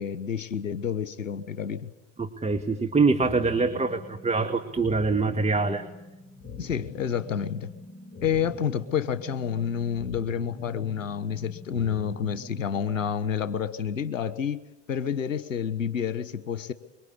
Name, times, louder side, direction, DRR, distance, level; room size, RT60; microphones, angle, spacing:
voice 1, 0.0-1.9 6.6-7.7 8.2-14.6 14.9-16.7, left 8 dB, 85° left, 14 dB, 1.3 m, -29 dB
voice 2, 2.2-5.9, right 4 dB, 15° right, 7 dB, 2.1 m, -24 dB
sound 1, 3.2-13.2, left 3 dB, 40° left, 5.7 m, -44 dB
25.0 x 23.0 x 9.8 m, 0.94 s
hypercardioid pair, 70°, 38 cm